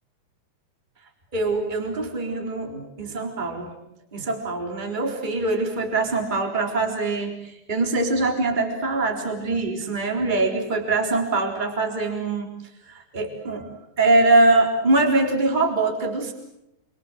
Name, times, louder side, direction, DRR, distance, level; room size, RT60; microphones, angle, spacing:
voice 1, 1.3-3.7 4.1-12.5 12.9-13.7 14.0-16.3, right 2 dB, 10° right, 3 dB, 3.8 m, -23 dB
27.5 x 26.5 x 7.7 m, 0.83 s
omnidirectional pair, 4.2 m